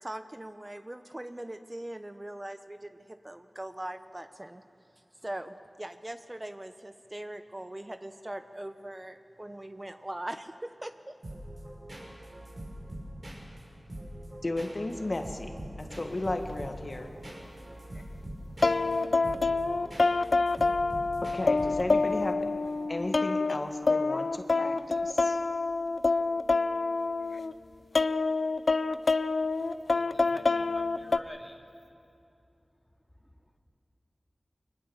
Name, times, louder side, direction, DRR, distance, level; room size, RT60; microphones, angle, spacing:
voice 1, 0.0-4.6 5.2-11.2, right 1 dB, 25° right, 9 dB, 0.8 m, -41 dB
sound 1, 11.2-22.1, equal, 60° right, 5.6 m, -43 dB
voice 2, 14.4-17.1 21.3-22.5 22.9-25.4, left 2 dB, 50° left, 5 dB, 1.7 m, -34 dB
sound 2, 16.5-16.6 18.6-27.5 27.9-31.2, left 3 dB, 75° left, 0.5 m, -27 dB
voice 3, 30.0-31.6 33.2-33.4, left 1 dB, 20° left, 3 dB, 2.4 m, -48 dB
23.0 x 20.0 x 7.2 m, 2.5 s
cardioid pair, 40°, 0 cm